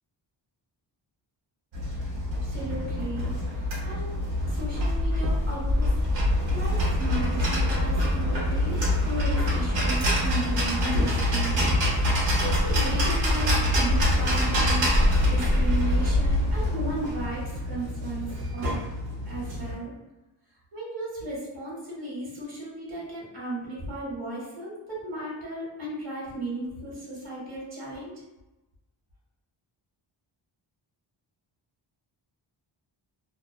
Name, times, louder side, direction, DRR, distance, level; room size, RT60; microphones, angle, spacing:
sound 1, 1.7-19.7, left 1 dB, 70° right, 0.8 m, -25 dB
voice 1, 2.3-5.9 6.3-11.6 12.2-18.3 18.5-18.8 19.3-19.9 20.7-28.2, right 1 dB, 50° right, -5 dB, 1.1 m, -35 dB
2.5 x 2.2 x 2.2 m, 1.0 s
wide cardioid pair, 175°, 47 cm